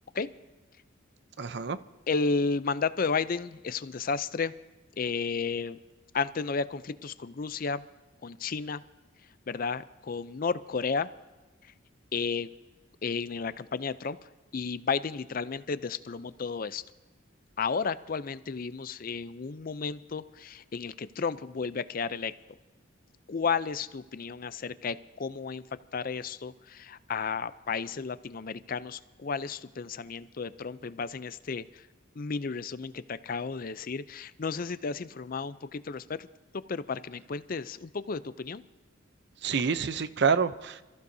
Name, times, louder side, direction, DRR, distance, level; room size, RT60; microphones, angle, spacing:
voice 1, 1.4-1.8 39.4-40.8, right 5 dB, 55° right, 13 dB, 0.6 m, -27 dB
voice 2, 2.1-4.5 5.0-5.8 6.1-7.8 8.2-8.8 9.5-11.1 11.6-11.7 12.1-12.5 13.0-16.8 17.6-22.3 23.3-25.6 25.9-31.9 32.2-36.3 36.5-38.6, left 5 dB, 45° left, 15 dB, 0.5 m, -33 dB
27.0 x 14.5 x 2.7 m, 1.2 s
head